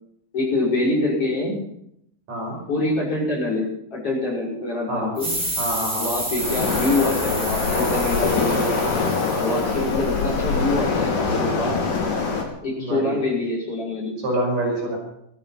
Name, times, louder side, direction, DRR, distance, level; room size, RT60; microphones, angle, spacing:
voice 1, 0.3-1.6 2.7-5.3 6.0-8.7 9.3-11.8 12.6-14.1, left 2 dB, 40° left, -4 dB, 6.5 m, -25 dB
sound 1, 5.2-10.5, right 1 dB, 15° right, 4.8 m, -30 dB
voice 2, 5.6-6.1 12.8-13.2 14.2-15.0, right 1 dB, 55° right, -1 dB, 6.4 m, -26 dB
Waves surf, 6.4-12.4, left 4 dB, 75° left, 4.5 m, -23 dB
17.5 x 13.5 x 5.7 m, 0.74 s
omnidirectional pair, 3.9 m